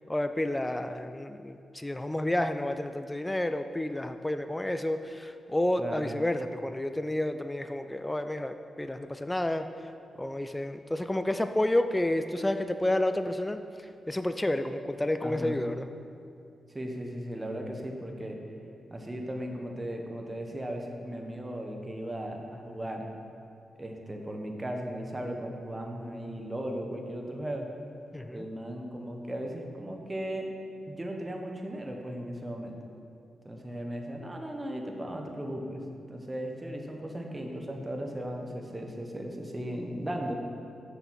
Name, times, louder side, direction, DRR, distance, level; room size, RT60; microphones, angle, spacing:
voice 1, 0.1-9.7 10.2-15.9 28.1-28.4, left 1 dB, 15° left, 9 dB, 0.4 m, -30 dB
voice 2, 5.8-6.1 15.2-15.6 16.7-18.4 18.9-23.1 23.8-27.7 28.3-30.5 30.9-32.8 33.4-35.8 36.1-40.3, right 1 dB, 20° right, 2 dB, 1.2 m, -36 dB
6.9 x 6.8 x 5.9 m, 2.6 s
cardioid pair, 75°, 0 cm